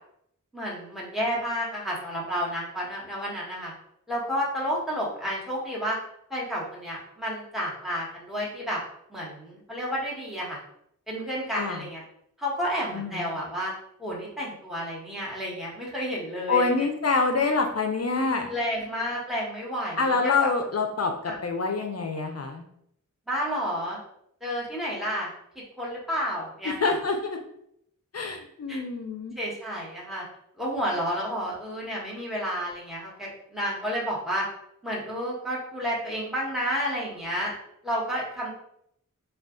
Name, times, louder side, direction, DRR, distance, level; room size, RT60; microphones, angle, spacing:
voice 1, 0.5-3.7 4.1-6.0 6.3-8.8 9.1-10.6 11.1-12.0 12.4-13.7 14.0-16.7 17.5-17.6 18.1-20.5 21.3-21.4 23.3-24.0 24.4-25.3 25.5-26.9 28.7-28.8 29.4-30.2 30.6-34.5 34.8-37.5 37.8-38.5, equal, ahead, -5 dB, 1.1 m, -31 dB
voice 2, 12.9-13.3 16.5-18.5 20.0-22.6 26.6-27.4 28.1-29.3, left 4 dB, 50° left, 4 dB, 0.4 m, -26 dB
2.4 x 2.3 x 3.6 m, 0.72 s
wide cardioid pair, 55°, 32 cm